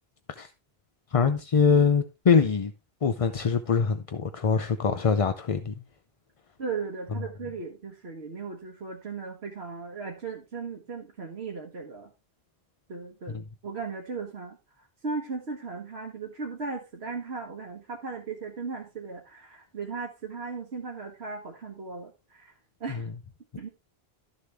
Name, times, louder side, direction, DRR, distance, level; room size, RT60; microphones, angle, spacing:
voice 1, 1.1-2.7 3.0-5.7 13.3-13.4 22.9-23.1, left 5 dB, 40° left, 0.6 m, -23 dB
voice 2, 6.6-12.1 12.9-22.5 22.8-23.1 23.6-23.7, right 4 dB, 90° right, 1.6 m, -37 dB
13.0 x 6.8 x 3.4 m
omnidirectional pair, 1.0 m